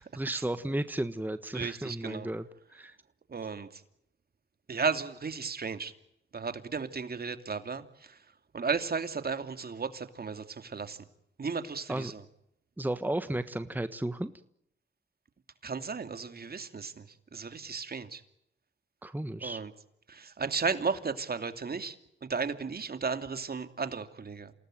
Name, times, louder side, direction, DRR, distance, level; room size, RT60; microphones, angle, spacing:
voice 1, 0.0-2.4 2.7-3.0 11.9-12.1 12.8-14.3 19.0-19.6, right 1 dB, 10° right, 11 dB, 1.4 m, -33 dB
voice 2, 1.5-2.3 3.3-3.8 4.7-5.9 6.3-8.2 8.5-11.0 11.4-12.2 15.6-18.2 19.4-19.7 20.1-22.0 22.2-24.5, right 5 dB, 50° right, 9 dB, 2.7 m, -34 dB
28.0 x 18.5 x 9.2 m, 0.79 s
cardioid pair, 55°, 21 cm